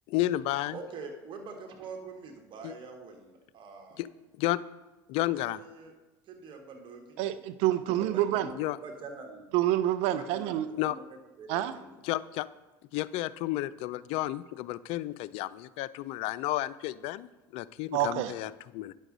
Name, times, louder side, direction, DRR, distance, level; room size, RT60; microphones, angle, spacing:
voice 1, 0.1-0.8 2.6-2.7 4.0-4.1 4.4-4.6 5.1-5.6 8.5-8.8 10.8-11.0 12.0-12.5 12.9-17.3 17.5-18.9, left 15 dB, 65° left, 17 dB, 0.4 m, -32 dB
voice 2, 0.7-4.0 5.3-5.9 6.3-7.4 8.0-8.5 8.8-9.5 10.1-11.1 11.4-12.0, right 4 dB, 45° right, 3 dB, 1.6 m, -45 dB
voice 3, 7.2-8.5 9.5-10.7 11.5-11.7 17.9-18.3, right 13 dB, 70° right, 13 dB, 0.5 m, -27 dB
9.9 x 6.4 x 4.0 m, 1.1 s
hypercardioid pair, 85°, 11 cm